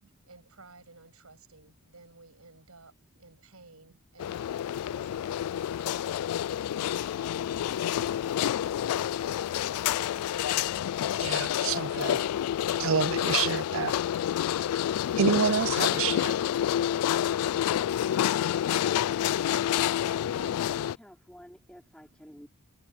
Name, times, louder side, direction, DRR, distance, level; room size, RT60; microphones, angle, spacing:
voice 1, 0.2-4.5 4.9-6.1 6.7-9.6, right 3 dB, 80° right, 6.9 m, -55 dB
sound 1, 4.2-21.0, left 10 dB, 90° left, 0.3 m, -28 dB
voice 2, 11.2-12.2 12.8-13.9 15.2-16.4, right 7 dB, 65° right, 0.4 m, -28 dB
voice 3, 20.3-22.5, equal, 5° left, 4.8 m, -50 dB
head